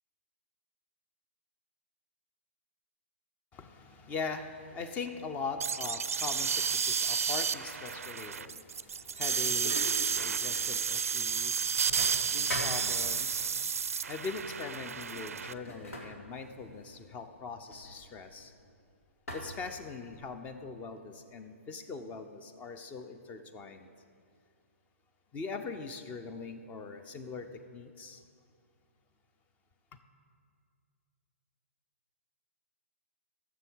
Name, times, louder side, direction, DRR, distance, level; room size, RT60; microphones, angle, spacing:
voice 1, 3.5-13.8 14.1-18.5 19.3-23.9 25.3-28.2, left 4 dB, 20° left, 9 dB, 0.7 m, -41 dB
sound 1, 5.6-15.5, right 6 dB, 80° right, 0.4 m, -31 dB
sound 2, 8.7-10.8 11.1-13.4 14.3-14.5 14.9-18.7 19.3-20.4, left 1 dB, 80° left, 2.2 m, -43 dB
13.5 x 7.1 x 4.7 m, 2.2 s
hypercardioid pair, 135°, 8 cm